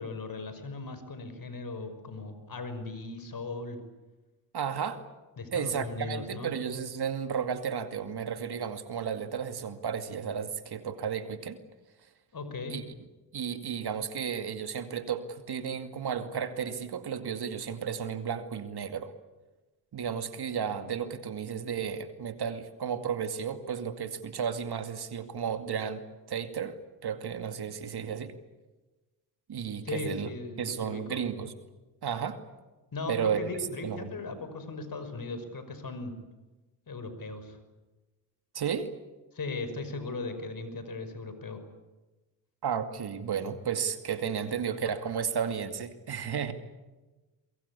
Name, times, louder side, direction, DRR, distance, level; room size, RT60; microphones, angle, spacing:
voice 1, 0.0-3.8 5.4-6.5 12.3-12.8 29.8-31.2 32.9-36.1 36.9-37.6 39.3-41.6, left 3 dB, 50° left, 10 dB, 5.7 m, -38 dB
voice 2, 4.5-5.0 5.5-11.6 12.7-12.8 13.3-19.1 19.9-28.4 29.5-30.3 30.6-31.5 32.0-32.4 33.1-33.5 33.8-34.1 38.5-38.9 42.6-46.5, right 7 dB, 60° right, 8 dB, 2.4 m, -33 dB
23.0 x 23.0 x 8.5 m, 1.1 s
supercardioid pair, 55°, 44 cm